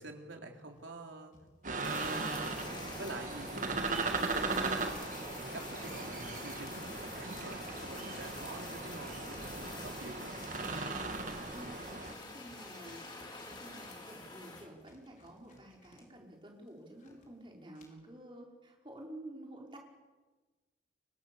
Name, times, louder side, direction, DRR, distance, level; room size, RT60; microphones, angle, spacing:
voice 1, 0.0-1.4 1.6-2.3 3.0-4.1 4.5-5.0 5.3-10.4, right 2 dB, 90° right, 2 dB, 3.9 m, -47 dB
sound 1, 0.7-4.3 4.6-16.0 16.4-17.3 17.7-17.8, left 2 dB, 45° left, 5.7 m, -64 dB
sound 2, 1.6-12.1, right 3 dB, 40° right, 1.9 m, -38 dB
Fire, 1.8-14.7, left 3 dB, 25° left, 4.2 m, -47 dB
voice 2, 3.2-3.9 11.5-11.8 12.1-13.1 13.4-19.8, right 1 dB, 25° right, 0 dB, 5.3 m, -51 dB
29.5 x 24.0 x 7.2 m, 1.3 s
head